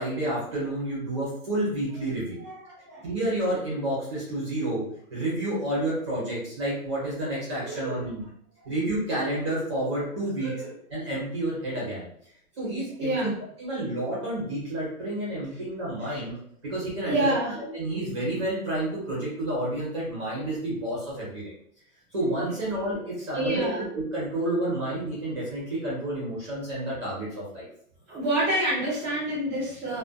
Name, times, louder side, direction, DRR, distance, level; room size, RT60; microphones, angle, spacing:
voice 1, 0.0-2.4 3.0-4.8 5.1-8.2 8.6-10.5 10.9-12.1 12.6-13.1 13.6-16.3 16.6-17.3 17.7-21.4 22.1-27.7, right 1 dB, 20° right, -7 dB, 0.8 m, -30 dB
voice 2, 2.3-3.1 7.6-8.1 10.4-10.7 13.0-13.3 16.0-16.2 17.0-17.6 23.3-23.8 28.1-30.0, right 1 dB, 10° left, -16 dB, 0.5 m, -28 dB
2.4 x 2.4 x 2.3 m, 0.66 s
hypercardioid pair, 170°, 45 cm